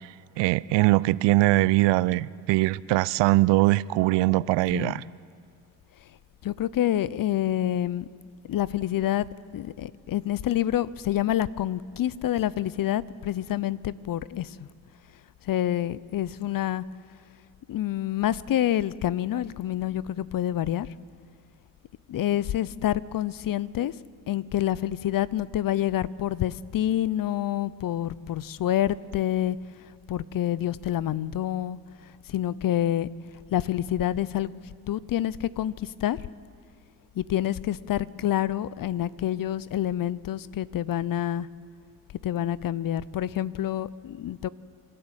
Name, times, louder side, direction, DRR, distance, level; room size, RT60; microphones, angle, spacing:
voice 1, 0.4-5.0, right 18 dB, 70° right, 21 dB, 0.6 m, -22 dB
voice 2, 4.7-5.0 6.4-8.1 8.5-9.3 9.5-14.7 15.4-16.8 17.7-20.9 22.1-23.9 24.3-29.6 30.1-31.8 32.3-33.1 33.5-34.5 34.9-36.2 37.2-41.5 42.2-44.5, left 12 dB, 50° left, 20 dB, 0.7 m, -27 dB
26.5 x 12.0 x 9.0 m, 2.1 s
supercardioid pair, 60°, 45 cm